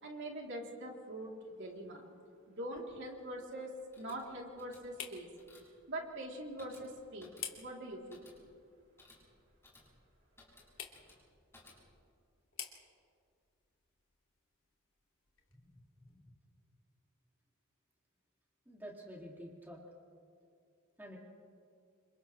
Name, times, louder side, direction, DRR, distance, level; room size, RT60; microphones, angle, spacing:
voice 1, 0.0-2.1 2.5-5.3 5.9-7.3 7.6-8.3, right 1 dB, 60° right, -1 dB, 3.5 m, -43 dB
sound 1, 1.4-16.2, left 9 dB, 65° left, 2.6 m, -54 dB
sound 2, 3.7-12.1, left 2 dB, 10° left, 6.8 m, -63 dB
voice 2, 15.5-16.3 18.7-19.8 21.0-21.2, equal, 10° right, -2 dB, 2.7 m, -50 dB
29.5 x 27.5 x 3.4 m, 2.3 s
head